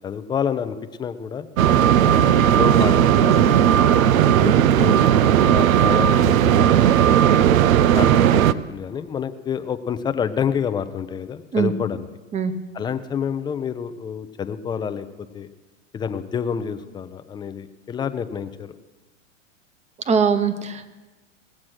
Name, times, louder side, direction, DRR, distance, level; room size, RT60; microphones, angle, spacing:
voice 1, 0.0-1.5 2.0-5.0 5.4-7.4 7.9-12.1 12.7-15.0 15.3-15.5 15.9-18.7, left 7 dB, 10° left, 10 dB, 0.4 m, -28 dB
sound 1, 1.6-8.5, right 10 dB, 90° right, 0.6 m, -16 dB
voice 2, 20.1-20.9, right 6 dB, 15° right, 11 dB, 0.8 m, -21 dB
18.0 x 7.4 x 6.3 m, 1.2 s
hypercardioid pair, 125°, 40 cm